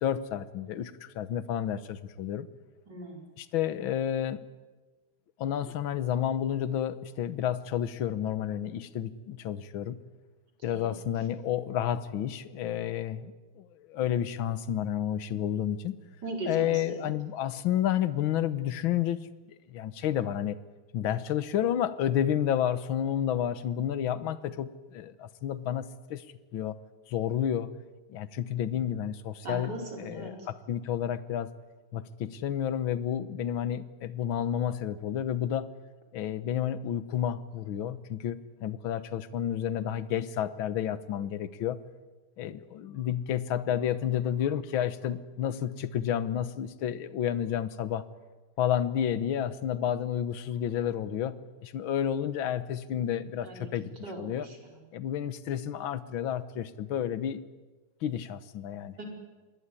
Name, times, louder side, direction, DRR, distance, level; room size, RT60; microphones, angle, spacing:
voice 1, 0.0-2.5 3.4-4.4 5.4-10.0 10.6-15.9 16.5-19.2 19.7-20.6 20.9-26.2 26.5-26.8 27.1-27.7 28.1-29.7 30.0-31.5 31.9-35.7 36.1-41.8 42.4-48.1 48.6-53.9 54.2-54.5 54.9-57.4 58.0-58.9, left 10 dB, 70° left, 14 dB, 1.8 m, -30 dB
voice 2, 2.9-3.3 10.6-10.9 16.2-17.1 29.4-30.5 53.4-53.7 54.0-54.6 59.0-59.1, right 2 dB, 50° right, 1 dB, 5.4 m, -39 dB
26.5 x 20.5 x 9.8 m, 1.3 s
omnidirectional pair, 2.4 m